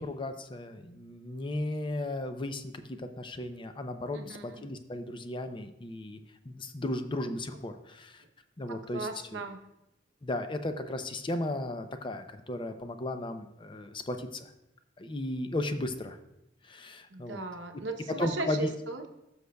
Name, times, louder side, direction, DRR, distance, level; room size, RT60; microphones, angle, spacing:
voice 1, 0.0-8.2 8.6-9.4 10.2-14.5 15.0-16.2 16.6-17.4 18.1-18.7, left 1 dB, 25° left, 8 dB, 0.5 m, -35 dB
voice 2, 4.1-4.6 8.7-9.6 17.1-19.1, right 3 dB, 75° right, 5 dB, 0.8 m, -37 dB
13.5 x 6.4 x 2.3 m, 0.87 s
head